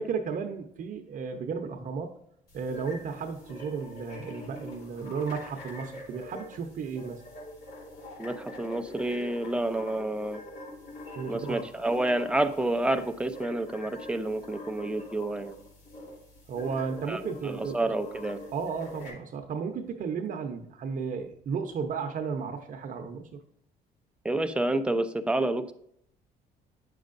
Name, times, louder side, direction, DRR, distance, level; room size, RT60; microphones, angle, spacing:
voice 1, 0.0-2.1 2.5-7.2 11.1-11.6 16.5-17.8 18.5-23.3, right 5 dB, 50° right, 5 dB, 0.8 m, -34 dB
sound 1, 2.5-19.1, left 1 dB, 70° left, 2.8 m, -44 dB
voice 2, 8.2-10.4 11.3-15.5 17.1-18.4 24.2-25.7, right 1 dB, 5° right, 8 dB, 0.6 m, -29 dB
9.2 x 6.4 x 2.6 m, 0.72 s
cardioid pair, 110°, 17 cm